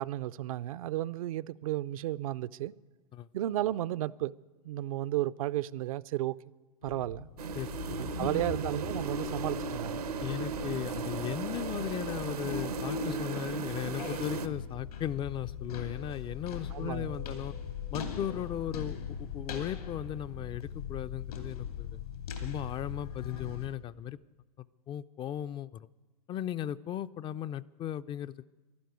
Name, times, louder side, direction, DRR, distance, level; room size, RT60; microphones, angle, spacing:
voice 1, 0.0-2.7 3.3-4.3 4.6-6.4 6.8-7.3 8.0-10.0 16.7-17.3, right 14 dB, 65° right, 0.5 m, -33 dB
sound 1, 6.8-23.7, left 7 dB, 80° left, 2.6 m, -41 dB
sound 2, 7.4-14.5, right 4 dB, 85° right, 0.9 m, -36 dB
voice 2, 7.6-8.4 10.2-17.5 17.9-22.0 22.4-24.2 24.6-25.9 26.3-28.4, left 11 dB, 25° left, 0.4 m, -37 dB
12.0 x 11.5 x 9.4 m
hypercardioid pair, 105°, 19 cm